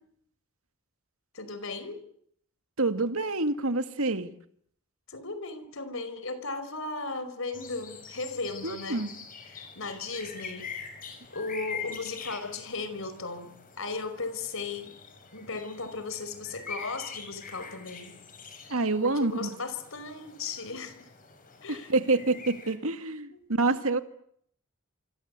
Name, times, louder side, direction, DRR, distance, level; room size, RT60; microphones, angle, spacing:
voice 1, 1.3-2.0 5.1-9.1 9.5-10.7 11.3-15.0 15.3-18.1 19.0-21.0 21.6-21.9 23.3-23.4, left 3 dB, 65° left, 5.0 m, -36 dB
voice 2, 2.8-4.3 8.6-9.1 18.7-19.5 21.7-24.0, right 3 dB, 70° right, 2.2 m, -27 dB
sound 1, 7.5-22.8, left 5 dB, 40° left, 6.8 m, -44 dB
27.5 x 25.0 x 8.4 m
head